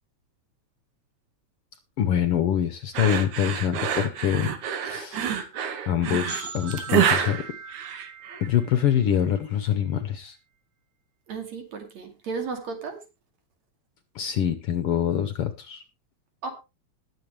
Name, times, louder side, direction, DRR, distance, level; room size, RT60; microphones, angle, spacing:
voice 1, 2.0-4.5 4.8-5.4 5.9-7.4 8.4-10.4 14.1-15.8, left 9 dB, 70° left, 11 dB, 1.5 m, -25 dB
sound 1, 2.9-8.5, right 8 dB, 85° right, 2.6 m, -27 dB
sound 2, 6.3-9.9, right 5 dB, 45° right, 1.6 m, -41 dB
voice 2, 11.3-13.0 16.4-16.5, right 4 dB, 65° right, 5 dB, 3.7 m, -34 dB
20.5 x 7.4 x 3.2 m, 0.26 s
omnidirectional pair, 3.3 m